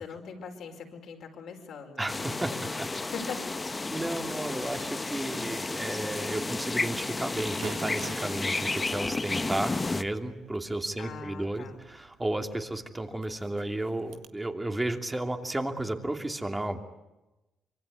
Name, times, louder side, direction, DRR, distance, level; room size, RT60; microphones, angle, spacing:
voice 1, 0.0-2.2 2.5-2.7 3.0-3.4 11.0-11.8, left 6 dB, 70° left, 4 dB, 5.1 m, -41 dB
voice 2, 2.0-2.9 3.9-16.8, right 1 dB, 15° right, 5 dB, 2.7 m, -33 dB
sound 1, 2.1-10.0, left 3 dB, 25° left, 1.0 m, -32 dB
Gunshot gunfire / Fireworks, 7.3-14.3, right 9 dB, 80° right, 1.7 m, -49 dB
25.5 x 23.5 x 9.6 m, 1.0 s
cardioid pair, 90°, 0 cm